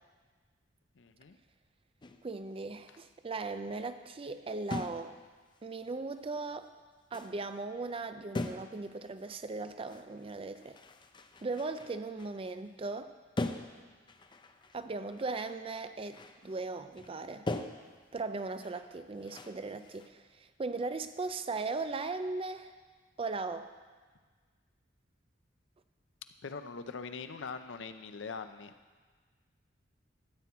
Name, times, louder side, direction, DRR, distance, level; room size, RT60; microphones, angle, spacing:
voice 1, 1.0-1.4 26.4-28.7, left 5 dB, 80° left, 10 dB, 0.6 m, -42 dB
sound 1, 2.0-2.4 4.7-5.2 5.5-5.6 6.5-6.6 7.1-7.5 8.3-8.9 9.2-9.3 9.9-13.0 13.4-15.6 15.9-16.6 16.9-17.2 17.5-20.1, left 2 dB, 25° left, 0.5 m, -41 dB
voice 2, 2.2-5.2 5.6-6.7 7.1-10.8 11.4-13.1 14.7-17.5 18.1-20.2 20.6-22.7 23.2-23.7, right 3 dB, 30° right, 10 dB, 0.5 m, -38 dB
13.0 x 4.5 x 8.4 m, 1.5 s
head